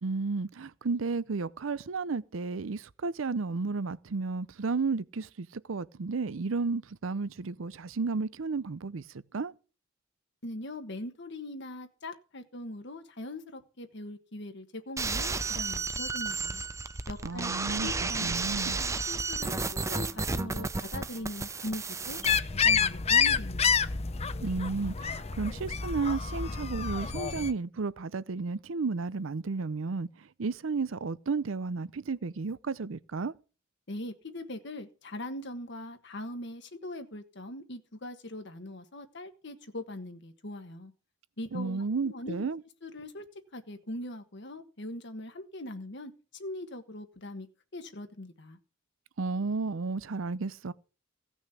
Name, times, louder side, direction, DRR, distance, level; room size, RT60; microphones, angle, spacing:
voice 1, 0.0-9.0 9.3-9.5 17.2-18.8 24.4-33.3 41.5-42.6 49.2-50.7, right 4 dB, 80° right, 0.6 m, -33 dB
voice 2, 10.4-16.6 17.1-17.5 17.8-18.3 18.7-22.2 22.5-23.8 33.9-40.9 41.4-42.5 42.8-43.3 43.5-47.5 47.7-48.6, left 1 dB, 60° left, 1.4 m, -41 dB
sound 1, 15.0-22.4, right 4 dB, 15° right, 0.5 m, -32 dB
sound 2, 22.2-27.5, left 6 dB, 30° left, 0.6 m, -28 dB
16.5 x 6.3 x 6.9 m
head